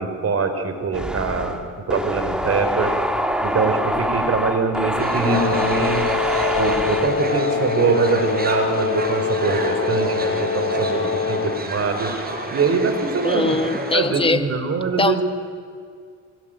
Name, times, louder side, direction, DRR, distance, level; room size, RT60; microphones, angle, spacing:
voice 1, 0.0-1.6 1.9-2.9 3.4-6.1 6.6-12.1 12.5-13.6 13.9-15.2, right 4 dB, 45° right, 8 dB, 4.6 m, -23 dB
sound 1, 0.9-7.3, equal, ahead, 2.2 m, -25 dB
sound 2, 5.0-14.0, right 2 dB, 30° right, 5.1 m, -29 dB
Wind instrument woodwind instrument, 5.3-11.7, left 7 dB, 40° left, 1.0 m, -24 dB
voice 2, 13.2-14.4 15.0-15.2, left 3 dB, 15° left, 8 dB, 1.8 m, -21 dB
26.0 x 24.0 x 9.1 m, 2.1 s
cardioid pair, 85°, 33 cm